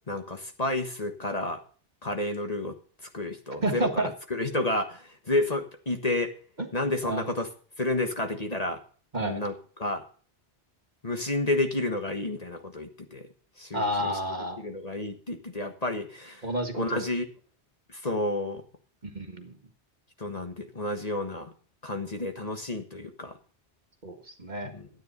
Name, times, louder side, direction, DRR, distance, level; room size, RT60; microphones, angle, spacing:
voice 1, 0.1-1.6 2.0-2.7 3.1-6.3 6.7-7.5 7.8-8.8 9.2-10.0 11.0-13.3 13.6-14.1 14.6-16.4 16.7-17.3 17.9-18.6 20.2-21.5 21.8-23.3 24.6-24.9, left 2 dB, 35° left, 5 dB, 1.5 m, -30 dB
voice 2, 3.6-4.1 7.0-7.3 9.1-9.4 13.7-14.6 16.4-17.1 19.0-19.5 24.0-24.7, right 1 dB, 40° right, 5 dB, 1.8 m, -30 dB
13.0 x 9.5 x 5.5 m, 0.42 s
omnidirectional pair, 1.2 m